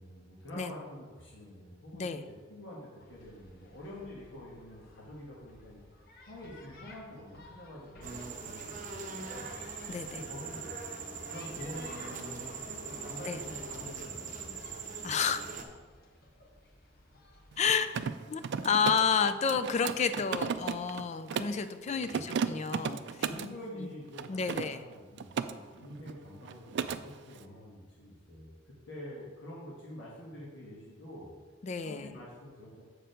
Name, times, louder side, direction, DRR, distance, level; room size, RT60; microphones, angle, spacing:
voice 1, 0.0-5.8 6.3-9.5 10.1-10.7 11.2-14.7 16.4-16.5 21.9-22.2 23.1-31.3 31.8-32.8, left 1 dB, 80° left, -5 dB, 1.6 m, -47 dB
sound 1, 3.0-17.8, left 2 dB, 55° left, 1.0 m, -56 dB
sound 2, 8.0-15.6, right 4 dB, 45° right, 0.8 m, -41 dB
voice 2, 9.9-10.2 13.2-13.4 15.0-15.4 17.6-17.9 18.3-23.0 23.8-23.9 24.3-24.8 31.6-32.1, left 6 dB, 35° left, 11 dB, 0.4 m, -30 dB
Mechanisms, 17.5-21.6 22.0-23.5 24.1-25.5 25.8-26.2 26.4-27.0, right 6 dB, 65° right, 0.4 m, -35 dB
7.4 x 4.5 x 5.1 m, 1.4 s
head